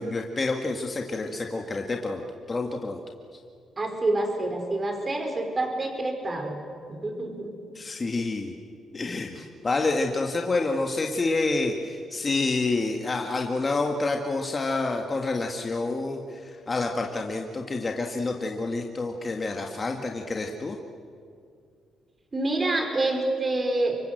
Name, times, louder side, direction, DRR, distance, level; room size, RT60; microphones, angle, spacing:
voice 1, 0.0-3.0 3.3-3.4 7.8-8.5 8.9-20.8, left 3 dB, 30° left, 2 dB, 1.8 m, -28 dB
voice 2, 3.8-6.6 6.9-7.5 22.3-24.0, right 2 dB, 30° right, 4 dB, 4.8 m, -27 dB
25.5 x 22.5 x 7.9 m, 2.3 s
cardioid pair, 90°, 0 cm